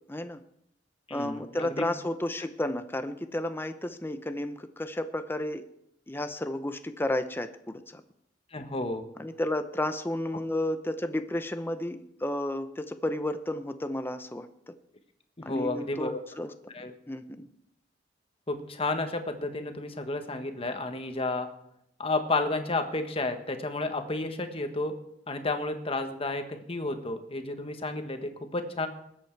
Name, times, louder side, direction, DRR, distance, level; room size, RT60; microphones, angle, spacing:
voice 1, 0.1-0.4 1.1-5.6 6.1-8.0 9.2-14.7 15.4-16.5 17.1-17.5, left 1 dB, 10° left, 9 dB, 0.7 m, -32 dB
voice 2, 1.1-1.8 8.5-9.0 15.4-16.2 16.7-16.9 18.5-21.5 22.0-24.9 25.3-28.9, left 2 dB, 30° left, 7 dB, 1.3 m, -31 dB
20.0 x 8.3 x 4.6 m, 0.75 s
head